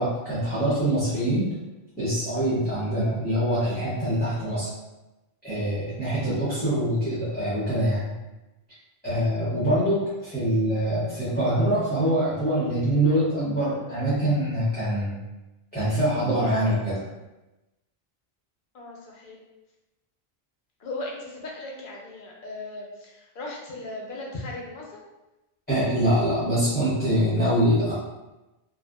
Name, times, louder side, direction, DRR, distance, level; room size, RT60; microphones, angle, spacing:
voice 1, 0.0-1.5 2.0-4.7 5.4-8.1 9.0-15.2 15.7-17.0 25.7-27.9, right 1 dB, 10° left, -12 dB, 0.7 m, -24 dB
voice 2, 18.7-19.4 20.8-25.0, left 2 dB, 60° left, -2 dB, 0.7 m, -37 dB
2.5 x 2.3 x 2.2 m, 1.0 s
omnidirectional pair, 1.0 m